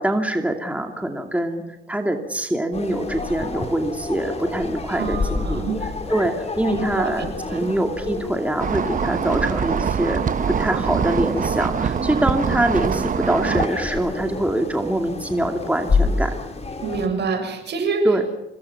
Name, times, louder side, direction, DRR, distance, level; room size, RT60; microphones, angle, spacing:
voice 1, 0.0-5.6 6.1-10.2 10.6-16.3 18.0-18.2, right 1 dB, 5° right, 4 dB, 2.6 m, -24 dB
sound 1, 2.7-17.1, left 3 dB, 30° left, 4.6 m, -29 dB
voice 2, 4.9-5.8 6.7-7.7 16.8-18.1, right 4 dB, 60° right, 6 dB, 7.1 m, -26 dB
sound 2, 8.6-13.7, right 7 dB, 40° right, 0.9 m, -24 dB
27.0 x 21.5 x 5.9 m, 1.0 s
cardioid pair, 90°, 20 cm